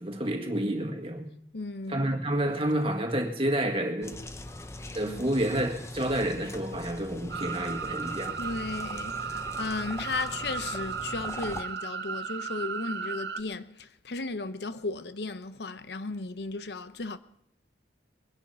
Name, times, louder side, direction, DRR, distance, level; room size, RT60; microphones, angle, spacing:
voice 1, 0.0-1.3 1.9-4.2 4.9-8.4, right 1 dB, 30° right, 1.9 m, -29 dB
voice 2, 1.5-2.1 5.0-5.3 8.4-17.2, left 3 dB, 70° left, 0.8 m, -35 dB
sound 1, 4.0-11.6, left 1 dB, 15° left, 0.7 m, -42 dB
sound 2, 7.3-13.4, right 6 dB, 75° right, 0.9 m, -35 dB
22.5 x 10.5 x 5.6 m
head